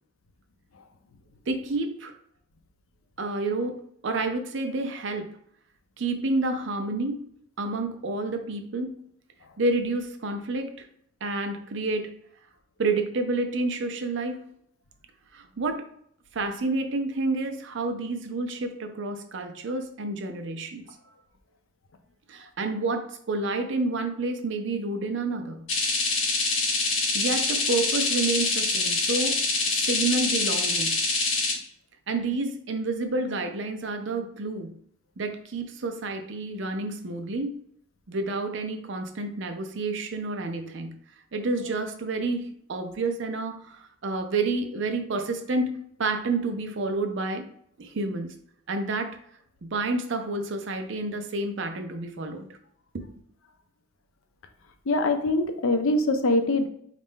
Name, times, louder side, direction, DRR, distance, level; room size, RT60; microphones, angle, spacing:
voice 1, 1.5-2.1 3.2-5.3 6.0-7.2 7.6-9.0 9.6-10.9 11.2-12.1 12.8-14.4 15.3-15.9 16.3-20.8 22.3-25.7 27.1-29.4 29.7-31.0 32.1-34.7 35.2-37.5 38.1-40.9 41.3-45.7 46.0-47.4 47.8-48.4 48.7-49.2 49.6-52.5 52.9-53.0, right 2 dB, 60° right, 6 dB, 0.5 m, -29 dB
sound 1, 25.7-31.5, left 3 dB, 70° left, 1.1 m, -25 dB
voice 2, 54.9-56.7, left 2 dB, 85° left, 7 dB, 0.5 m, -23 dB
4.2 x 2.5 x 3.6 m, 0.67 s
head